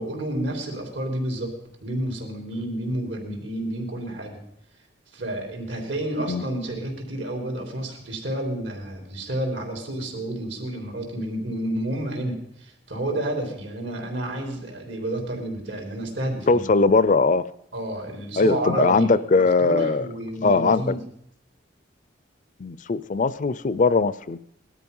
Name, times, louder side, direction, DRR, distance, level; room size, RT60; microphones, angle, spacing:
voice 1, 0.0-1.5 1.8-4.4 5.1-16.6 17.7-21.0, right 1 dB, 75° right, 3 dB, 3.9 m, -30 dB
voice 2, 16.5-17.4 18.4-20.1 20.4-20.9 22.6-24.4, left 4 dB, 45° left, 17 dB, 0.5 m, -20 dB
18.5 x 12.5 x 5.5 m, 0.75 s
head